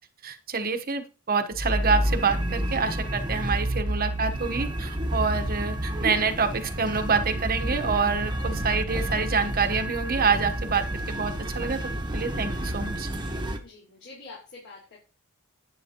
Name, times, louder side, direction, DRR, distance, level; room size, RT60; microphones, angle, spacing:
voice 1, 0.2-11.8 12.1-13.1, right 5 dB, 40° right, 8 dB, 1.1 m, -27 dB
sound 1, 1.5-13.6, right 1 dB, 20° right, 1.1 m, -30 dB
voice 2, 13.6-15.0, left 3 dB, 55° left, -6 dB, 4.5 m, -46 dB
10.5 x 9.0 x 3.0 m, 0.32 s
head